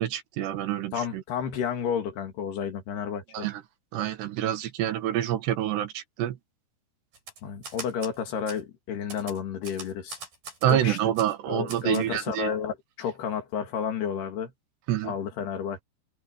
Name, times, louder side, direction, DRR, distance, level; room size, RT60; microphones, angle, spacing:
voice 1, 0.0-1.2 3.3-3.6 3.9-6.4 10.6-12.5 14.9-15.1, right 12 dB, 80° right, 3.8 m, -27 dB
voice 2, 0.9-3.5 7.4-10.2 10.7-11.1 11.5-14.5 15.0-15.8, left 7 dB, 70° left, 4.5 m, -31 dB
Typewriter, 7.1-8.2 8.5-8.6 9.1-10.7 11.2-11.3 11.7-12.1, right 4 dB, 55° right, 9.5 m, -41 dB
omnidirectional pair, 4.8 m